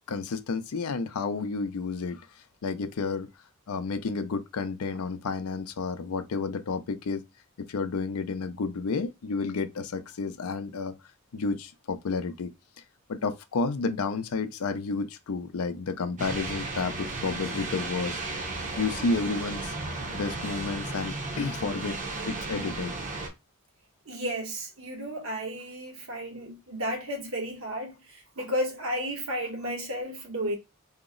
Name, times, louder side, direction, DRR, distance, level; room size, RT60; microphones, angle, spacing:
voice 1, 0.1-2.3 2.6-3.3 3.7-7.2 7.7-10.9 11.3-12.5 13.1-19.7 20.1-22.0 22.3-22.9, left 4 dB, 85° left, 0.5 m, -31 dB
sound 1, 16.2-23.3, right 2 dB, 35° right, 0.7 m, -34 dB
voice 2, 24.1-30.6, equal, 70° right, 1.1 m, -33 dB
2.8 x 2.0 x 3.7 m
head